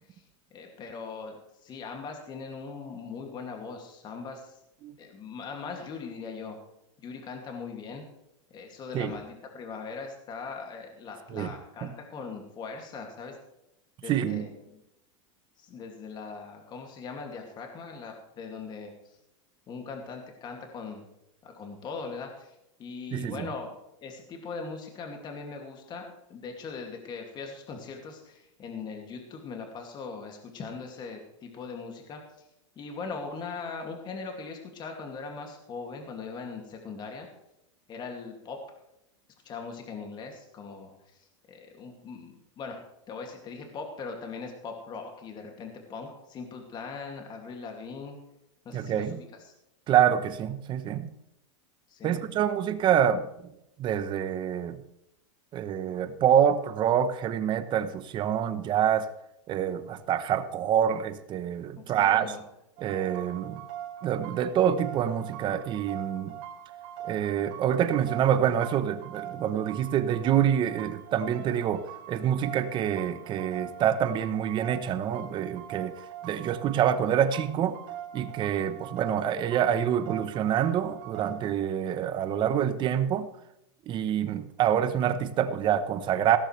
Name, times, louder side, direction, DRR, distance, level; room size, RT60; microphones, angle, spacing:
voice 1, 0.5-4.6 5.0-6.6 7.0-8.0 8.5-13.4 14.0-14.8 15.6-19.2 19.7-21.0 21.4-23.7 24.0-32.5 32.8-37.3 37.9-38.6 39.4-42.8 43.1-48.2 48.6-49.5 51.9-52.2 61.7-62.4, left 4 dB, 30° left, 2 dB, 2.5 m, -40 dB
voice 2, 14.1-14.5 23.1-23.5 48.7-49.2 49.9-51.1 52.0-53.5 53.8-54.8 55.5-59.1 59.5-62.4 62.8-63.6 64.0-66.4 67.0-77.8 78.1-83.3 83.9-86.4, right 9 dB, 30° right, 11 dB, 1.0 m, -26 dB
sound 1, 62.8-81.5, right 10 dB, 50° right, 3.0 m, -42 dB
16.5 x 13.5 x 3.3 m, 0.83 s
supercardioid pair, 145°, 16 cm